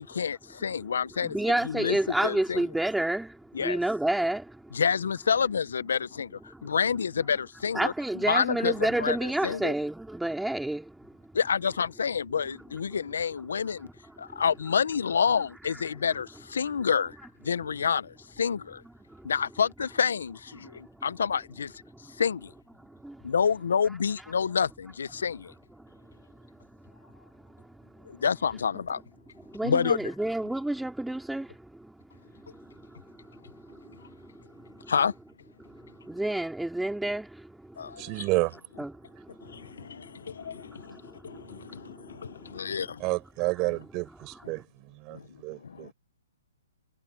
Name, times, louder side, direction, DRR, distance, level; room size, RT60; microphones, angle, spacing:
voice 1, 0.1-1.4 1.6-2.0 2.2-2.6 3.5-3.8 4.7-7.9 8.3-9.7 11.3-13.9 14.2-17.2 17.4-18.8 19.2-21.7 22.2-22.5 23.2-25.5 28.1-29.0 29.6-30.1 34.9-35.1 37.8-38.3 39.4-43.0 45.1-45.3 45.6-45.9, left 6 dB, 75° left, 1.3 m, -28 dB
voice 2, 1.2-4.8 6.5-6.6 7.7-11.1 14.2-14.4 19.1-19.3 20.6-21.0 22.0-22.2 22.8-23.3 25.8-26.2 26.5-28.1 29.5-32.0 32.3-34.9 35.6-38.1 38.8-39.7 40.0-42.7, right 1 dB, 5° right, 4.2 m, -32 dB
voice 3, 38.0-38.6 43.0-45.9, right 25 dB, 30° right, 7.2 m, -30 dB
hypercardioid pair, 130°, 0 cm